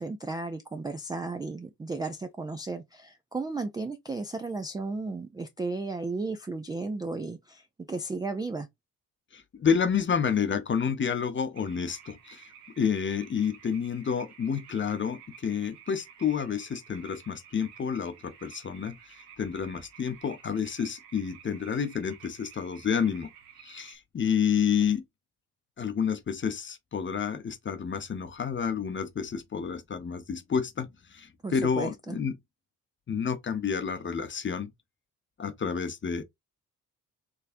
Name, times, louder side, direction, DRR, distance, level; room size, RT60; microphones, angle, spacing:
voice 1, 0.0-8.7 31.4-32.2, right 3 dB, 10° right, 0.3 m, -34 dB
voice 2, 9.3-12.5 12.8-19.0 19.4-23.3 23.6-25.0 25.8-32.3 33.1-34.7 35.4-36.2, left 7 dB, 25° left, 0.7 m, -29 dB
sound 1, 11.5-24.0, right 8 dB, 80° right, 0.8 m, -52 dB
3.5 x 3.2 x 2.5 m
figure-of-eight pair, 40°, 47 cm